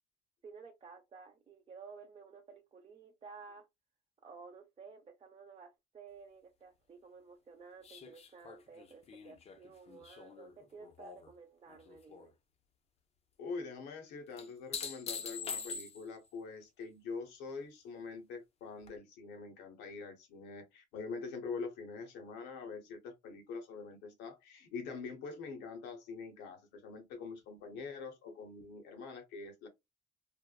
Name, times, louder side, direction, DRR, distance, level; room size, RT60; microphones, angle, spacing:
voice 1, 0.4-3.7 4.2-12.3, right 5 dB, 35° right, 0.6 m, -54 dB
sound 1, 7.8-11.3 11.7-12.3 14.4-16.3 18.9-19.0, left 5 dB, 40° left, 0.6 m, -44 dB
voice 2, 13.4-29.7, left 4 dB, 90° left, 1.0 m, -44 dB
3.3 x 2.1 x 2.2 m
cardioid pair, 110°, 17 cm